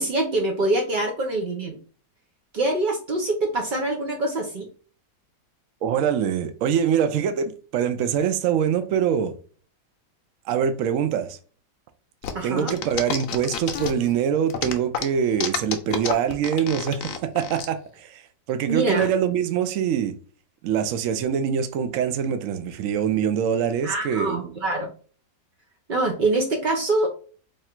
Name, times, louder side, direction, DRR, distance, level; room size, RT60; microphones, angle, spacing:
voice 1, 0.0-1.8 2.5-4.7 12.3-12.8 18.7-19.1 23.8-24.9 25.9-27.1, right 2 dB, 90° right, 0.4 m, -24 dB
voice 2, 5.8-9.3 10.5-11.4 12.4-18.2 18.5-20.1 20.6-24.5, right 8 dB, 70° right, 0.8 m, -24 dB
sound 1, 12.2-14.1 14.5-17.7, left 8 dB, 65° left, 0.9 m, -29 dB
3.2 x 2.4 x 4.3 m
omnidirectional pair, 1.7 m